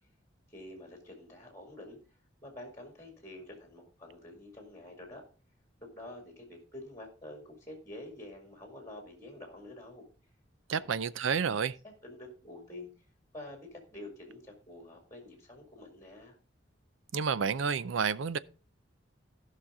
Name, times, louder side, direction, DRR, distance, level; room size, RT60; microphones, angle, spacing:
voice 1, 0.5-2.0 2.4-5.2 5.8-10.1 10.7-11.4 11.8-13.1 13.3-16.4, left 1 dB, 15° left, 2.1 m, -48 dB
voice 2, 10.7-11.8 17.1-18.4, right 6 dB, 75° right, 0.5 m, -30 dB
16.0 x 5.7 x 3.6 m
head